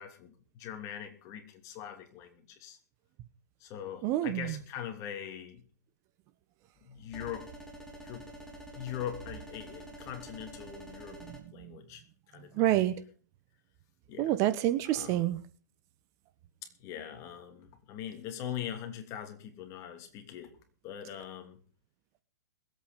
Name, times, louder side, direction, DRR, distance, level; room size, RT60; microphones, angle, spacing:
voice 1, 0.0-2.8 3.6-5.6 6.8-7.5 8.0-8.3 8.7-11.2 11.5-12.7 14.1-14.3 14.8-15.2 16.6-20.5 20.8-21.6, left 9 dB, 35° left, 6 dB, 2.9 m, -42 dB
voice 2, 4.0-4.5 11.3-11.7 12.5-13.0 14.2-15.4, right 13 dB, 35° right, 13 dB, 1.0 m, -28 dB
sound 1, 7.1-11.4, right 1 dB, 5° left, 3.4 m, -47 dB
21.0 x 8.6 x 5.3 m, 0.41 s
hypercardioid pair, 135°, 9 cm